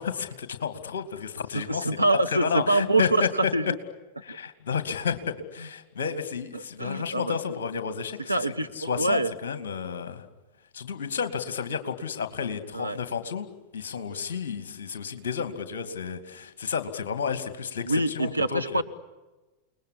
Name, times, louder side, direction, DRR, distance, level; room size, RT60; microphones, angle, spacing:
voice 1, 0.0-1.9 2.3-3.5 4.2-10.2 10.7-13.5 13.7-18.8, left 6 dB, 60° left, 10 dB, 2.4 m, -31 dB
voice 2, 1.5-3.8 4.3-4.4 6.5-7.4 8.3-9.3 12.7-13.0 17.8-18.8, right 2 dB, 85° right, 7 dB, 1.2 m, -25 dB
29.5 x 20.0 x 10.0 m, 1.2 s
figure-of-eight pair, 90°, 0 cm